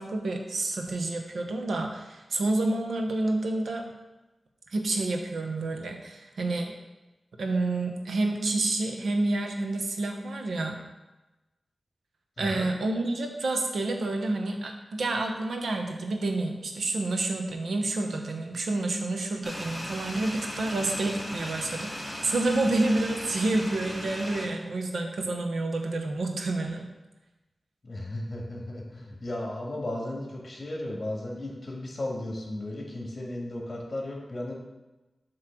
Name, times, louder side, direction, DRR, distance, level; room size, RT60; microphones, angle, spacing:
voice 1, 0.0-3.8 4.7-6.7 7.4-10.8 12.4-26.9, right 2 dB, 90° right, 3 dB, 0.9 m, -29 dB
voice 2, 12.4-12.7 27.8-34.5, left 1 dB, 35° left, -2 dB, 1.9 m, -35 dB
sound 1, 19.4-24.5, equal, 5° left, 1.4 m, -37 dB
7.6 x 3.2 x 6.0 m, 1.1 s
wide cardioid pair, 130°, 0 cm